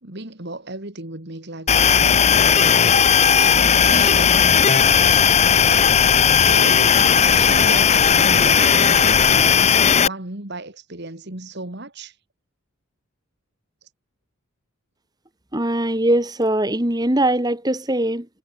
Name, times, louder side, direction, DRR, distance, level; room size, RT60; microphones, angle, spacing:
voice 1, 0.0-2.9 3.4-12.2 13.8-13.9, right 2 dB, 50° right, 2.6 m, -35 dB
sound 1, 1.7-10.1, left 7 dB, 30° left, 0.6 m, -15 dB
voice 2, 15.5-18.3, right 1 dB, 20° right, 1.8 m, -21 dB
head